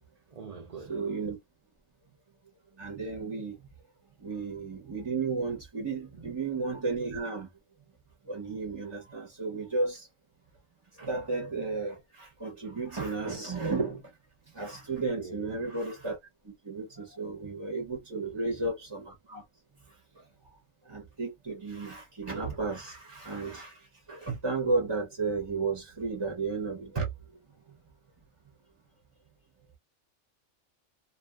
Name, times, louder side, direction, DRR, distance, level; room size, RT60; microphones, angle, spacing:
voice 1, 0.3-1.0 6.2-6.4 11.0-11.2 15.2-15.6 18.1-18.7 19.7-19.8, right 4 dB, 60° right, 0.4 m, -45 dB
voice 2, 0.9-1.4 2.8-3.6 4.2-7.5 8.3-10.1 11.0-14.0 14.5-16.2 16.4-19.4 20.9-23.7 24.1-27.1, right 3 dB, 25° right, 0.6 m, -33 dB
2.7 x 2.4 x 2.3 m
omnidirectional pair, 1.5 m